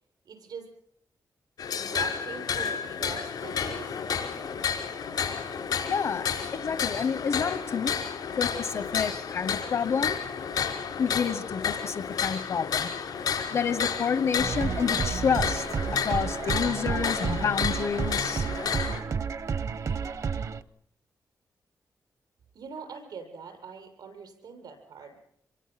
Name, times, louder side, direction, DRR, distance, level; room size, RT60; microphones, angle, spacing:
voice 1, 0.3-0.7 1.8-4.0 22.5-25.2, right 5 dB, 85° right, 6 dB, 7.3 m, -42 dB
sound 1, 1.6-19.0, left 7 dB, 90° left, 5.1 m, -31 dB
voice 2, 5.9-7.9 8.4-10.2 11.0-12.9 13.5-15.7 16.0-18.5, left 6 dB, 65° left, 12 dB, 1.0 m, -29 dB
sound 2, 14.4-20.6, right 6 dB, 55° right, 0.9 m, -31 dB
27.0 x 23.0 x 5.9 m, 0.69 s
wide cardioid pair, 155°, 7 cm